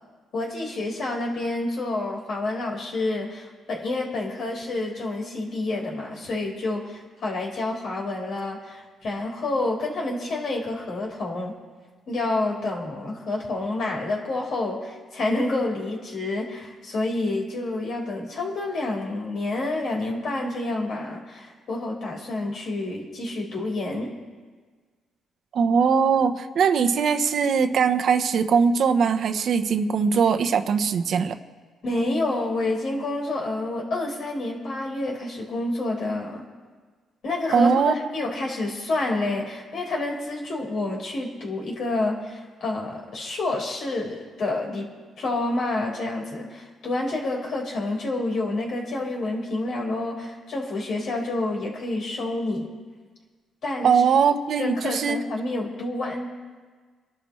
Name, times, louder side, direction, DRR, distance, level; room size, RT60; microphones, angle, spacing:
voice 1, 0.3-11.5 12.1-24.1 31.8-36.4 37.2-44.9 45.2-52.7 53.6-54.0 54.6-56.3, left 2 dB, 60° left, -2 dB, 4.7 m, -28 dB
voice 2, 25.5-31.4 37.5-37.9 53.8-55.2, right 6 dB, 60° right, 8 dB, 1.0 m, -21 dB
26.5 x 12.0 x 3.3 m, 1.5 s
cardioid pair, 90°, 0 cm